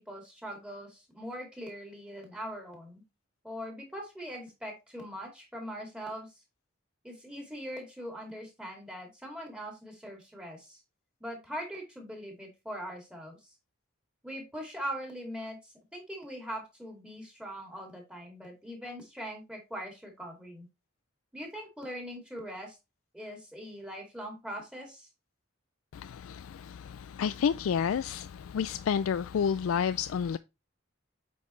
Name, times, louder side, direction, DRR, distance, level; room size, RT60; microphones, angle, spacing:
voice 1, 0.0-3.0 3.4-6.4 7.0-10.8 11.2-13.5 14.2-20.7 21.3-22.8 23.1-25.1, equal, 5° right, 2.3 m, -41 dB
voice 2, 25.9-30.4, left 7 dB, 85° left, 0.3 m, -30 dB
8.5 x 5.3 x 3.1 m
head